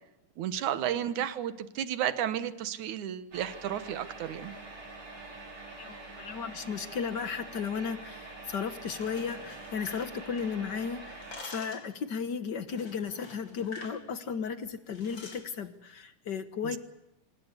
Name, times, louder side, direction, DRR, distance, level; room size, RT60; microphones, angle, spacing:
voice 1, 0.4-4.5 16.6-16.8, right 10 dB, 70° right, 13 dB, 2.6 m, -32 dB
sound 1, 3.3-11.4, right 2 dB, 50° right, 6.7 m, -45 dB
voice 2, 5.8-16.8, left 6 dB, 65° left, 11 dB, 1.0 m, -35 dB
sound 2, 8.8-10.7 11.0-11.9 12.7-14.0 14.3-14.5 14.9-15.5, left 3 dB, 35° left, 4.2 m, -46 dB
25.0 x 20.0 x 8.2 m, 0.90 s
omnidirectional pair, 3.8 m